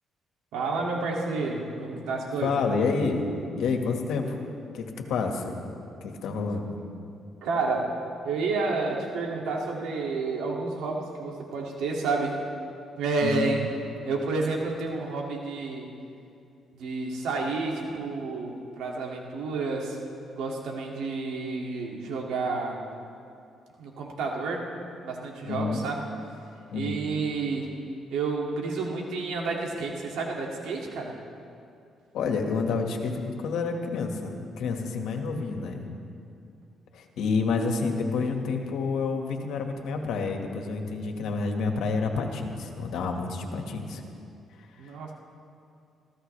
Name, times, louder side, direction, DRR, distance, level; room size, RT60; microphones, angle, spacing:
voice 1, 0.5-2.6 7.4-8.0 8.2-12.4 13.0-13.6 14.0-15.9 16.7-20.0 20.3-22.8 23.8-24.7 25.0-26.0 26.7-27.7 28.1-31.1 44.8-45.1, right 3 dB, 85° right, -1 dB, 2.5 m, -30 dB
voice 2, 2.4-3.3 3.6-4.4 4.7-5.5 6.0-6.8 13.2-13.6 25.4-25.9 26.7-26.9 32.1-35.9 36.9-44.0, left 4 dB, 80° left, 3 dB, 1.8 m, -29 dB
26.0 x 15.5 x 3.4 m, 2.5 s
cardioid pair, 90°, 0 cm